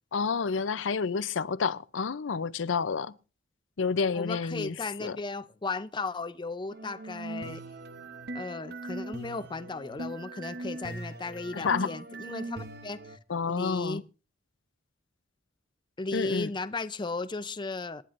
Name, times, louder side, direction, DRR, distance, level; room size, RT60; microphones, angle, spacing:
voice 1, 0.1-3.1 3.8-4.7 5.0-5.2 11.5-11.9 13.3-14.0 16.1-16.5, left 5 dB, 85° left, 0.6 m, -29 dB
voice 2, 4.1-7.6 8.3-13.2 13.5-14.0 16.0-18.0, left 3 dB, 25° left, 0.5 m, -35 dB
sound 1, 6.7-13.2, right 2 dB, 60° right, 0.9 m, -40 dB
27.0 x 10.0 x 2.6 m
head